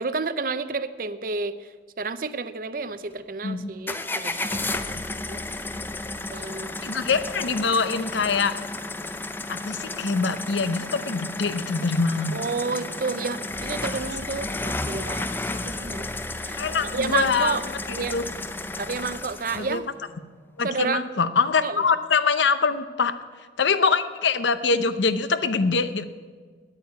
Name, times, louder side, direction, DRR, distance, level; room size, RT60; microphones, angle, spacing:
voice 1, 0.0-5.4 6.3-6.8 12.3-16.1 16.4-17.6 17.9-18.1 18.8-19.9 20.6-21.0 21.6-21.8, right 4 dB, 50° right, 14 dB, 0.6 m, -31 dB
sound 1, 3.9-19.8, left 2 dB, 10° left, 0.5 m, -32 dB
voice 2, 6.8-8.5 9.5-12.4 16.6-18.2 19.6-19.8 20.6-23.1 23.6-26.0, left 4 dB, 75° left, 12 dB, 0.7 m, -24 dB
9.8 x 9.0 x 9.3 m, 1.5 s
head